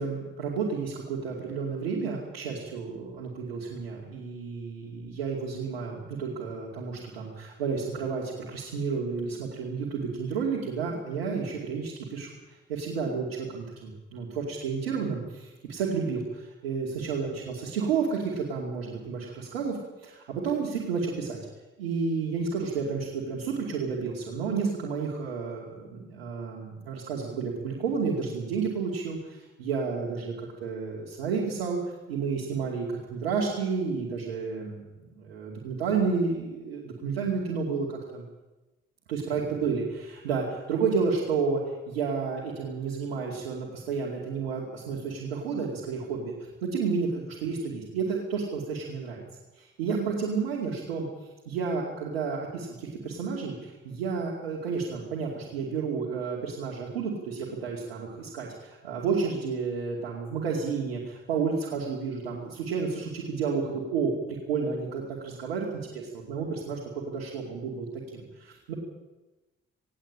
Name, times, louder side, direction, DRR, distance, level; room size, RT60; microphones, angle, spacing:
voice 1, 0.0-21.4 21.8-31.8 32.1-34.8 35.1-38.2 39.1-41.6 41.9-46.3 46.6-49.2 49.5-51.1 51.5-65.7 65.9-68.7, right 5 dB, 90° right, -3 dB, 2.6 m, -31 dB
17.5 x 17.5 x 8.8 m, 1.1 s
hypercardioid pair, 40°, 30 cm